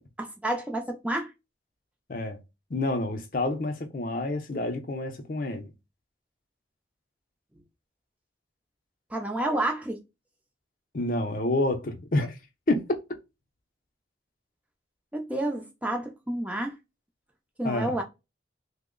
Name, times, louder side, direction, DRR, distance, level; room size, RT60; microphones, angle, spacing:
voice 1, 0.2-1.3 9.1-10.0 15.1-16.7 17.6-18.0, right 1 dB, 5° right, 0.4 m, -30 dB
voice 2, 2.7-5.7 10.9-12.4 12.7-13.0 17.6-18.0, left 2 dB, 45° left, 0.5 m, -28 dB
2.9 x 2.0 x 3.7 m
head